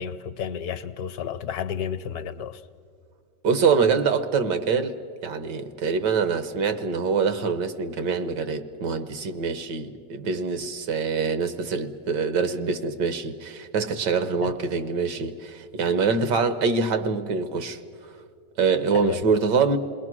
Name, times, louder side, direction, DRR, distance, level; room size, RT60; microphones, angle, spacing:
voice 1, 0.0-2.6 14.4-14.5 18.9-19.2, left 8 dB, 70° left, 1.2 m, -31 dB
voice 2, 3.4-17.8 18.6-19.8, right 5 dB, 80° right, 1.7 m, -25 dB
28.0 x 20.5 x 6.1 m
omnidirectional pair, 1.8 m